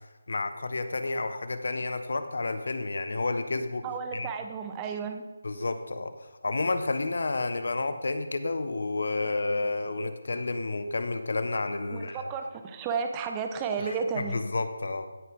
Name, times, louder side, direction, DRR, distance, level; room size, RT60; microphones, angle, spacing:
voice 1, 0.3-3.8 4.1-4.3 5.4-6.1 6.4-12.3 13.8-15.1, left 3 dB, 65° left, 9 dB, 1.3 m, -30 dB
voice 2, 3.8-5.2 11.9-14.4, right 5 dB, 15° right, 6 dB, 1.0 m, -32 dB
15.5 x 9.8 x 3.8 m, 1.1 s
figure-of-eight pair, 155°, 0 cm